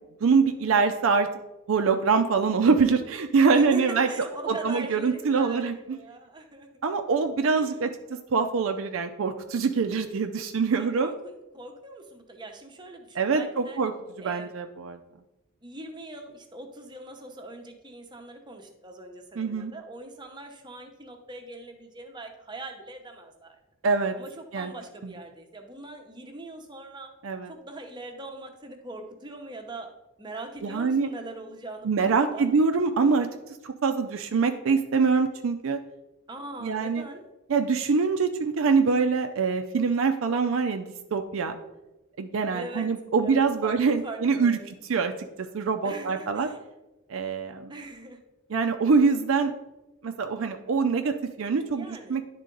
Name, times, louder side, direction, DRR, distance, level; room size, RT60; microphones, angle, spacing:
voice 1, 0.2-1.3 1.7-4.1 4.5-6.0 6.8-7.9 8.3-11.1 13.2-13.9 14.2-15.0 19.4-19.7 23.8-24.1 24.5-24.7 27.2-27.5 30.6-31.1 31.8-33.3 33.6-35.8 36.6-37.0 37.5-41.6 42.2-44.6 44.9-45.1 45.5-46.5 47.1-47.7 48.5-49.5 50.0-52.2, right 5 dB, 65° right, 6 dB, 0.4 m, -24 dB
voice 2, 4.1-6.7 7.5-7.8 10.8-13.8 14.2-14.5 15.6-23.6 24.1-27.1 27.5-29.9 30.2-32.5 36.3-37.2 42.5-42.9 43.2-44.7 45.8-46.6 47.7-48.2 51.7-52.2, right 2 dB, 20° right, 4 dB, 0.8 m, -41 dB
10.5 x 3.7 x 3.8 m, 1.0 s
head